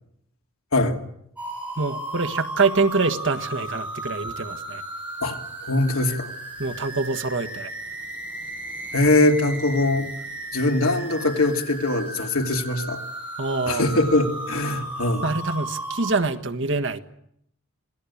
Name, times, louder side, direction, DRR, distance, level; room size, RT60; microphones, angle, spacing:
sound 1, 1.4-16.2, right 2 dB, 5° right, 7.8 m, -35 dB
voice 1, 1.8-4.8 6.6-7.7 13.4-13.8 15.2-17.0, right 3 dB, 55° right, 8 dB, 1.6 m, -25 dB
voice 2, 5.2-6.3 8.9-10.1 10.5-13.0 13.7-15.2, left 2 dB, 75° left, 3 dB, 2.9 m, -22 dB
27.0 x 18.5 x 8.6 m, 0.75 s
head